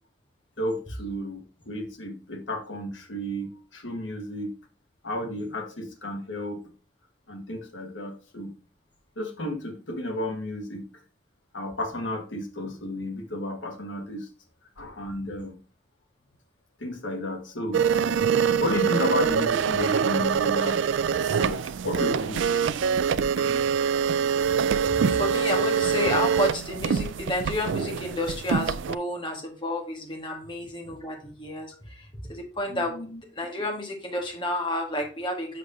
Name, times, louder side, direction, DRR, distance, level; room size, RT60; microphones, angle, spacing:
voice 1, 0.6-4.5 5.0-6.6 7.3-8.5 9.2-10.8 11.5-14.3 14.8-15.6 16.8-17.8 18.4-20.8 21.1-22.4 23.4-23.5 23.7-23.9 24.8-24.9 30.3-30.4 32.7-33.2, left 1 dB, 80° left, 5 dB, 1.5 m, -32 dB
sound 1, 17.7-28.9, right 7 dB, 80° right, 0.4 m, -24 dB
voice 2, 23.4-24.3 24.9-33.1 33.3-35.6, left 1 dB, 25° left, 1 dB, 1.5 m, -31 dB
6.7 x 6.2 x 2.7 m, 0.37 s
head